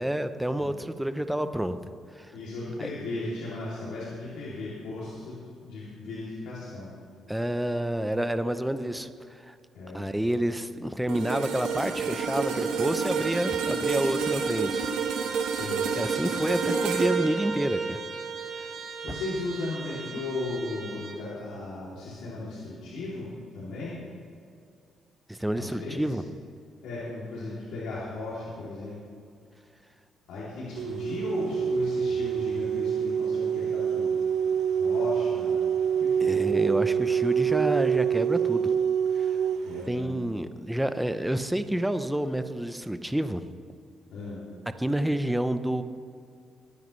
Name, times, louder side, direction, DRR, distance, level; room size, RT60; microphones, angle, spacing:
voice 1, 0.0-1.8 2.1-2.3 2.8-2.9 7.3-9.5 9.9-14.9 15.2-15.4 15.9-18.0 25.3-26.2 36.2-38.7 39.1-39.3 39.9-43.4 44.8-45.8, right 1 dB, 5° right, 10 dB, 0.7 m, -29 dB
voice 2, 2.3-6.9 9.7-10.1 15.4-15.9 18.7-23.3 23.5-24.0 25.6-26.1 26.8-29.0 30.3-34.2 34.8-35.6 36.0-36.4 39.6-40.2 44.1-44.4, left 2 dB, 85° left, -8 dB, 2.9 m, -36 dB
sound 1, 11.1-19.4 19.9-20.1, right 6 dB, 85° right, 1.4 m, -30 dB
Trumpet, 13.2-21.2, right 5 dB, 55° right, 2.4 m, -40 dB
sound 2, 30.8-39.8, right 8 dB, 70° right, 0.4 m, -26 dB
22.0 x 9.4 x 3.2 m, 2.4 s
cardioid pair, 90°, 0 cm